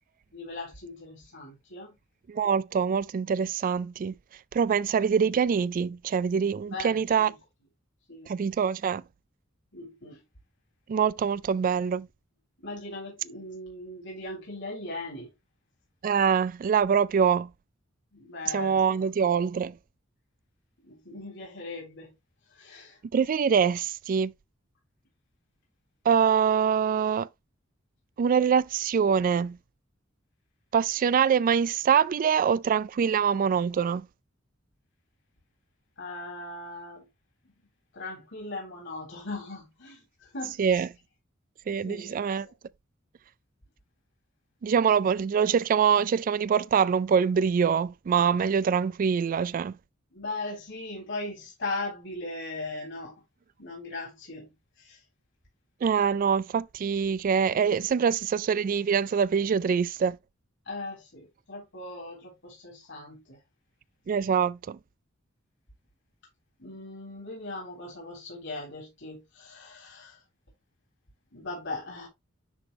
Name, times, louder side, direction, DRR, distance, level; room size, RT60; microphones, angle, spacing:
voice 1, 0.3-1.9 6.7-7.3 8.1-8.3 9.7-10.2 12.6-15.3 18.1-19.0 20.8-22.1 22.6-23.0 36.0-37.0 37.9-40.6 41.8-42.5 50.1-53.2 53.6-54.5 54.8-55.0 60.7-63.4 66.6-70.2 71.3-72.1, left 2 dB, 65° left, 3.6 m, -39 dB
voice 2, 2.3-4.1 4.5-7.3 8.3-9.0 10.9-12.1 16.0-17.5 18.5-19.8 23.1-24.3 26.1-27.3 28.2-29.6 30.7-34.1 40.6-40.9 41.7-42.5 44.6-49.7 55.8-60.2 64.1-64.8, right 7 dB, 45° right, 0.3 m, -24 dB
9.9 x 3.5 x 3.0 m
head